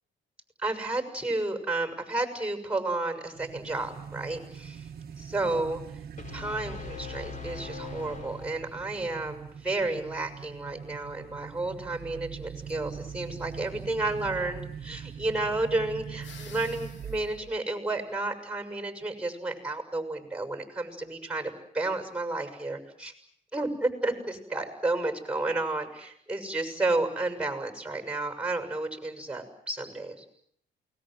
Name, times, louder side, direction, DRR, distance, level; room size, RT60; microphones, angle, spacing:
voice 1, 0.6-4.9 5.2-5.8 6.3-23.1 23.5-30.2, right 2 dB, 5° right, 7 dB, 6.5 m, -31 dB
sound 1, 3.3-17.6, right 7 dB, 55° right, 1.2 m, -42 dB
sound 2, 6.2-9.1, left 6 dB, 40° left, 4.1 m, -42 dB
sound 3, 16.2-17.3, left 6 dB, 70° left, 2.5 m, -49 dB
28.5 x 21.0 x 7.8 m, 0.70 s
cardioid pair, 85°, 20 cm